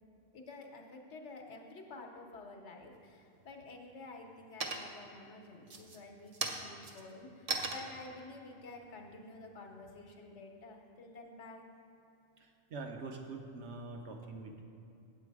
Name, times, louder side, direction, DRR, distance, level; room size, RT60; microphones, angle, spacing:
voice 1, 0.3-11.6, left 2 dB, 65° left, 3 dB, 1.2 m, -50 dB
sound 1, 2.9-3.5 3.9-4.3 4.6-5.2 5.6-10.0, right 3 dB, 40° right, 0.5 m, -40 dB
voice 2, 12.4-14.6, right 3 dB, 65° right, 2 dB, 1.0 m, -44 dB
8.3 x 7.7 x 4.8 m, 2.7 s
omnidirectional pair, 1.3 m